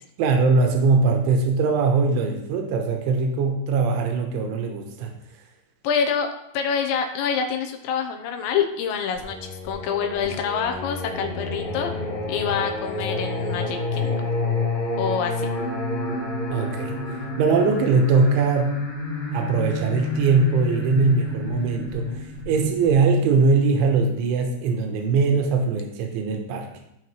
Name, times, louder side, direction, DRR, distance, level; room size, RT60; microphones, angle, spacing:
voice 1, 0.2-5.1 16.5-16.9 17.4-18.8 19.3-26.7, right 4 dB, 85° right, 3 dB, 3.5 m, -21 dB
voice 2, 5.8-6.3 6.5-11.9 12.3-14.2 15.0-15.5, left 7 dB, 75° left, 4 dB, 3.0 m, -26 dB
Singing, 9.2-23.9, left 2 dB, 50° left, 3.8 m, -29 dB
17.0 x 5.9 x 3.2 m, 0.80 s
omnidirectional pair, 5.5 m